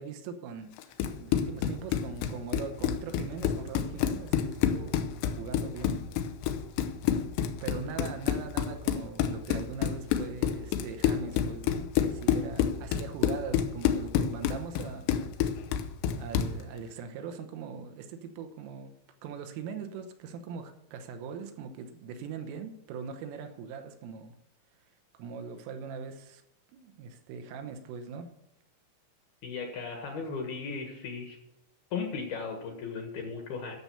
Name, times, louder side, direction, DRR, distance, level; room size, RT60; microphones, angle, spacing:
voice 1, 0.0-6.0 7.6-15.2 16.2-18.9 19.2-24.4 25.2-26.4 26.7-28.3, right 6 dB, 80° right, 7 dB, 3.6 m, -41 dB
Run, 0.8-16.6, left 9 dB, 85° left, 2.5 m, -29 dB
voice 2, 29.4-31.4 31.9-33.8, left 5 dB, 65° left, 2 dB, 2.6 m, -36 dB
13.5 x 7.0 x 6.9 m, 0.87 s
omnidirectional pair, 6.0 m